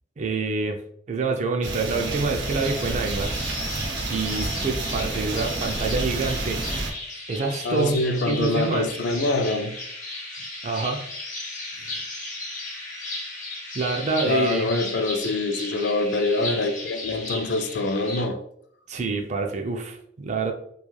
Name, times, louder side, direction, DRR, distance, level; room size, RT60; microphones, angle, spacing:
voice 1, 0.2-0.8 1.1-3.5 4.1-7.0 7.3-8.0 8.3-8.9 10.6-11.0 13.7-14.7 18.9-20.5, right 4 dB, 40° right, 0.4 m, -26 dB
sound 1, 1.6-6.9, right 2 dB, 85° right, 0.7 m, -29 dB
sound 2, 2.4-18.2, left 2 dB, 45° left, 0.7 m, -35 dB
voice 2, 7.6-9.8 14.2-18.4, left 2 dB, 70° left, 0.4 m, -25 dB
3.1 x 2.3 x 2.3 m
head